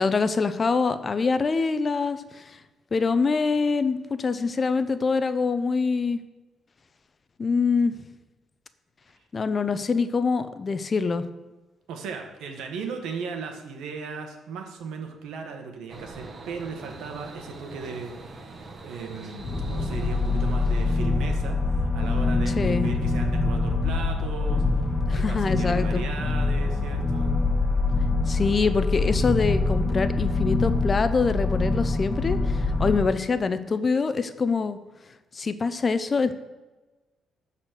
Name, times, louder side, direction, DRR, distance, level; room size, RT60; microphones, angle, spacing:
voice 1, 0.0-2.5 2.9-6.2 7.4-7.9 9.3-11.3 22.6-22.9 25.0-26.0 28.3-34.8 35.3-36.3, left 4 dB, 35° left, 11 dB, 0.7 m, -25 dB
voice 2, 11.9-24.6 25.1-27.4, right 5 dB, 85° right, 4 dB, 1.5 m, -37 dB
sound 1, 15.9-21.0, right 3 dB, 45° right, 1.4 m, -43 dB
sound 2, 19.4-33.1, left 3 dB, 20° left, 1.6 m, -24 dB
12.0 x 4.3 x 6.7 m, 1.2 s
cardioid pair, 90°, 0 cm